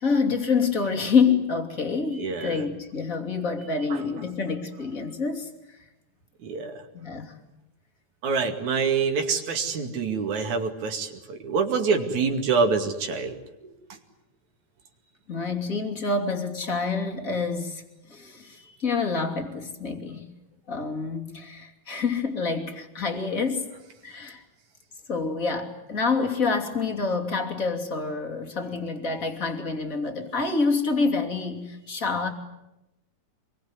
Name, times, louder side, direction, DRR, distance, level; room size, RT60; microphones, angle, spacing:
voice 1, 0.0-5.5 6.9-7.4 15.3-17.8 18.1-20.3 20.7-23.7 24.0-24.4 25.1-32.3, left 4 dB, 30° left, 5 dB, 3.0 m, -27 dB
voice 2, 2.2-2.6 3.9-4.0 6.4-6.8 8.2-13.7 18.6-18.7, right 5 dB, 80° right, 4 dB, 3.8 m, -26 dB
26.5 x 22.5 x 9.6 m, 0.93 s
omnidirectional pair, 3.3 m